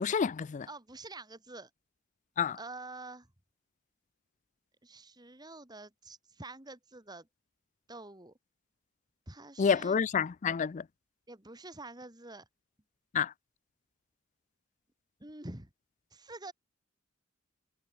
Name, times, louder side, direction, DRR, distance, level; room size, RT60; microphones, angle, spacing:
voice 1, 0.0-0.7 2.4-2.6 9.6-10.8 13.1-13.3, left 6 dB, 35° left, 0.3 m, -29 dB
voice 2, 0.7-1.7 2.5-3.3 4.8-7.3 7.9-8.3 9.3-10.0 11.3-12.5 15.2-15.7 16.1-16.5, right 2 dB, 20° right, 2.3 m, -47 dB
head